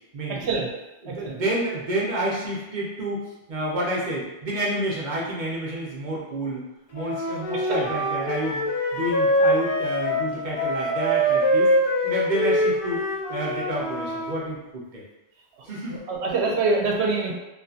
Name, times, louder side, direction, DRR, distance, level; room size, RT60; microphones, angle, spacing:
voice 1, 0.1-0.5 1.0-3.2 3.5-6.6 6.9-8.7 8.9-11.7 12.0-15.0 15.6-16.0, right 1 dB, 50° right, -5 dB, 0.7 m, -29 dB
voice 2, 1.1-1.4 7.5-7.9 15.9-17.3, right 3 dB, 90° right, -1 dB, 0.9 m, -25 dB
Wind instrument woodwind instrument, 6.9-14.4, equal, 45° left, 0.4 m, -24 dB
2.6 x 2.4 x 2.3 m, 1.0 s
omnidirectional pair, 1.1 m